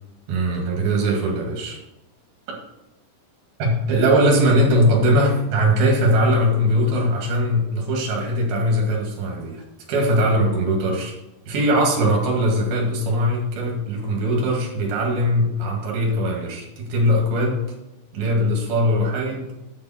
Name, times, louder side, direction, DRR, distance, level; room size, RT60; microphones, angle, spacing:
voice 1, 0.3-1.8 3.6-11.1 11.5-17.6 18.1-19.5, equal, 65° right, -1 dB, 3.6 m, -20 dB
8.9 x 6.9 x 4.2 m, 0.95 s
omnidirectional pair, 5.0 m